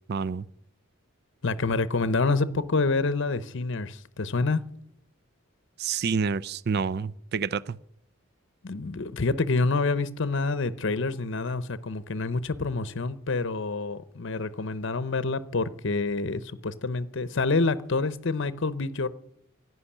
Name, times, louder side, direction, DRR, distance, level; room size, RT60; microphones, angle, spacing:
voice 1, 0.1-0.4 5.8-7.8, right 5 dB, 50° right, 0.4 m, -28 dB
voice 2, 1.4-4.6 8.6-19.1, left 3 dB, 60° left, 0.8 m, -27 dB
11.5 x 9.4 x 9.9 m
head